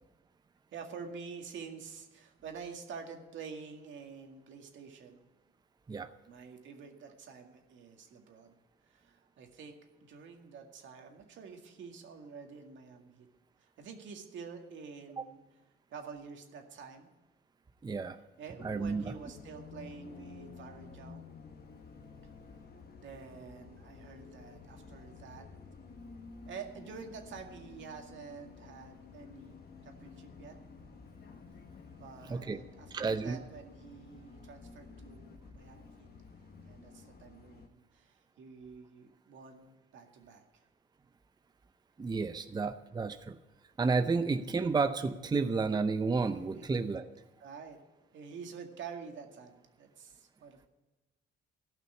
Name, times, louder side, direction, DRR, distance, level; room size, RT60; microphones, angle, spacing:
voice 1, 0.7-5.3 6.3-8.6 8.9-13.3 13.6-15.4 15.9-17.1 18.4-21.3 23.0-25.5 26.5-30.6 32.0-36.1 36.6-40.6 46.5-46.7 47.4-47.8 48.1-50.7, right 5 dB, 70° right, 3 dB, 2.0 m, -48 dB
voice 2, 17.8-18.2 18.6-19.1 32.3-32.6 32.9-33.4 42.0-43.4 43.8-47.1, right 4 dB, 20° right, 10 dB, 0.5 m, -31 dB
Bus, 18.6-37.7, left 4 dB, 50° left, 1.3 m, -52 dB
14.0 x 5.9 x 9.7 m, 1.1 s
cardioid pair, 90°, 20 cm